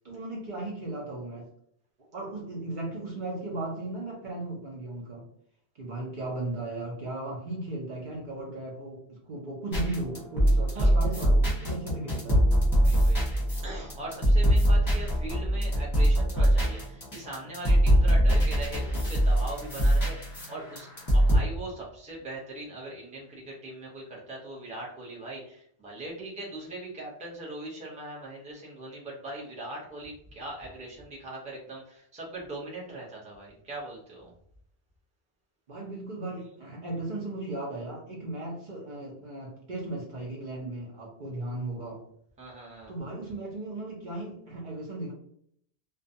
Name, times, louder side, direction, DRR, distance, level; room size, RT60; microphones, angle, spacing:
voice 1, 0.0-1.5 2.1-5.3 5.7-12.6 35.7-42.1 42.9-45.1, right 2 dB, 50° right, -3 dB, 0.7 m, -36 dB
sound 1, 9.7-21.4, equal, 20° left, 0.9 m, -23 dB
voice 2, 12.7-13.3 13.6-34.3 42.4-42.9, right 2 dB, 10° right, -4 dB, 0.6 m, -40 dB
2.4 x 2.2 x 2.6 m, 0.66 s
omnidirectional pair, 1.1 m